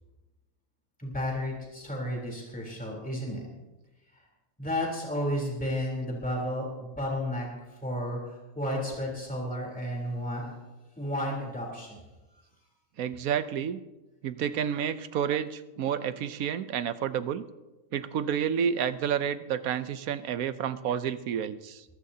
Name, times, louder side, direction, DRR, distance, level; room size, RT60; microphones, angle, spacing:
voice 1, 1.0-3.4 4.6-10.5 11.0-12.0, equal, 5° left, -2 dB, 3.5 m, -32 dB
voice 2, 13.0-13.8 14.2-17.4 17.9-21.8, right 8 dB, 85° right, 12 dB, 1.2 m, -30 dB
21.5 x 18.5 x 2.8 m, 1.1 s
omnidirectional pair, 1.4 m